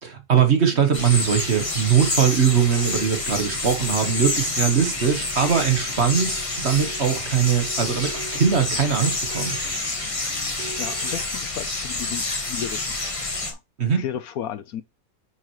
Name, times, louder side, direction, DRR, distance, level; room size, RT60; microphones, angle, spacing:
voice 1, 0.0-9.6 13.8-14.0, right 7 dB, 40° right, 1.5 m, -21 dB
sound 1, 0.7-11.3, right 4 dB, 75° right, 1.7 m, -42 dB
sound 2, 0.9-13.5, left 2 dB, 20° left, 1.4 m, -28 dB
voice 2, 10.5-13.6 14.0-14.8, left 10 dB, 65° left, 1.1 m, -34 dB
9.5 x 5.9 x 3.1 m
omnidirectional pair, 1.8 m